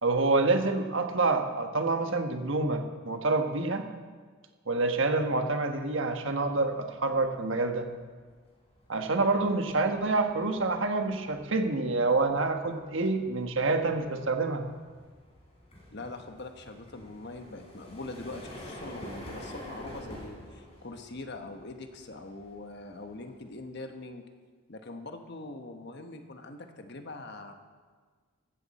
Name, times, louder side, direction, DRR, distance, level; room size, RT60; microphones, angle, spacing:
voice 1, 0.0-3.8 4.7-7.9 8.9-14.7, right 3 dB, 65° right, 5 dB, 1.3 m, -27 dB
sound 1, 6.7-6.8 7.1-23.8, equal, 30° left, 3.9 m, -48 dB
voice 2, 15.9-24.2 24.7-27.5, left 2 dB, 55° left, 6 dB, 1.2 m, -43 dB
15.5 x 13.0 x 4.3 m, 1.5 s
head